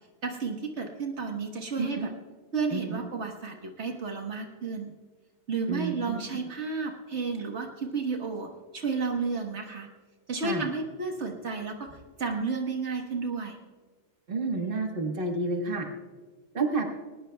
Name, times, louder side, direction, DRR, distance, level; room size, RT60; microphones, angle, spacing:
voice 1, 0.2-2.1 2.5-4.9 5.5-9.9 10.3-13.6, right 4 dB, 75° right, 2 dB, 1.6 m, -32 dB
voice 2, 1.8-2.1 2.7-3.0 5.7-6.2 10.4-10.6 14.3-15.9 16.5-16.9, right 3 dB, 50° right, 2 dB, 1.6 m, -30 dB
20.0 x 19.5 x 2.3 m, 1.4 s
omnidirectional pair, 1.2 m